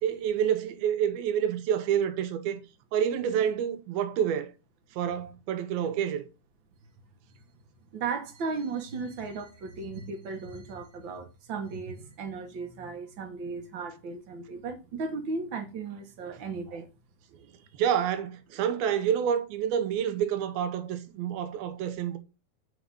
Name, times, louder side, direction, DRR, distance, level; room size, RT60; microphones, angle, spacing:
voice 1, 0.0-2.6 2.9-4.5 4.9-6.2 17.8-22.2, right 9 dB, 85° right, 2.7 m, -28 dB
voice 2, 7.9-16.9, right 4 dB, 60° right, 1.3 m, -36 dB
6.7 x 4.9 x 5.4 m
omnidirectional pair, 4.2 m